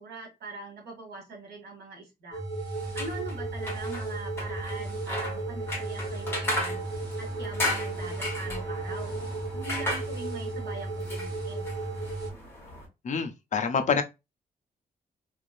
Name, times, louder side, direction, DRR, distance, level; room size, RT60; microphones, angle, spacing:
voice 1, 0.0-2.4 2.9-6.8 7.2-9.2 9.5-11.7, right 3 dB, 80° right, 2.0 m, -42 dB
sound 1, 2.3-12.3, right 2 dB, 25° right, 2.2 m, -34 dB
sound 2, 2.8-12.9, left 1 dB, 15° left, 1.4 m, -36 dB
voice 2, 13.0-14.0, left 6 dB, 45° left, 0.5 m, -26 dB
3.8 x 3.3 x 2.5 m
wide cardioid pair, 175°, 16 cm